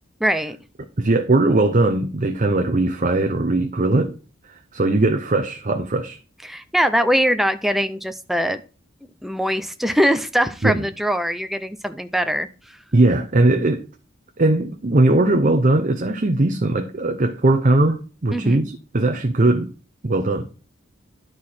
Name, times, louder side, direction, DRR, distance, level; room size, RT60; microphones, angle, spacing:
voice 1, 0.2-0.6 6.4-8.6 9.2-12.5 18.3-18.7, equal, ahead, 0.5 m, -22 dB
voice 2, 1.0-4.2 4.5-6.2 10.6-10.8 12.9-13.8 14.4-19.7 20.0-20.5, right 2 dB, 40° right, 0.7 m, -19 dB
11.5 x 4.7 x 4.2 m
head